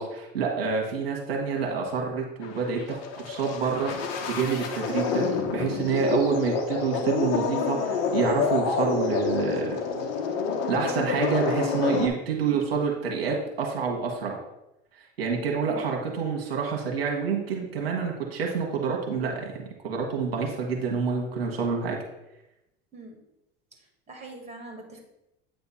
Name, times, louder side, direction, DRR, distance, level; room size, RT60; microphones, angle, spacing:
voice 1, 0.0-5.2 5.5-9.8 10.7-14.4 15.2-19.5 19.8-22.0, right 5 dB, 90° right, 0 dB, 1.4 m, -28 dB
sound 1, 2.4-12.1, left 5 dB, 60° left, 1.2 m, -28 dB
voice 2, 15.6-16.3 22.9-23.2 23.7-25.0, right 2 dB, 20° right, 2 dB, 2.4 m, -45 dB
8.6 x 3.5 x 5.6 m, 0.90 s
hypercardioid pair, 85°, 29 cm